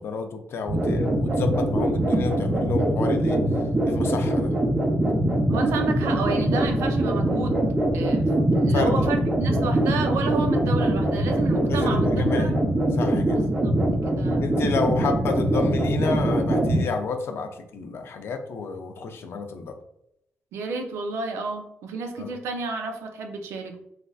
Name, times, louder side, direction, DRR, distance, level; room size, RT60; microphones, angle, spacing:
voice 1, 0.0-3.4 3.9-4.5 8.7-9.1 11.7-12.5 12.9-13.4 13.9-19.7 22.2-22.3, left 4 dB, 65° left, 6 dB, 0.4 m, -30 dB
sound 1, 0.7-16.8, right 1 dB, 25° right, 0.7 m, -23 dB
voice 2, 5.5-7.6 7.9-12.5 13.3-13.7 14.0-14.5 15.0-15.1 20.5-23.8, right 4 dB, 85° right, 4 dB, 0.5 m, -31 dB
3.3 x 2.5 x 2.3 m, 0.80 s
cardioid pair, 70°, 4 cm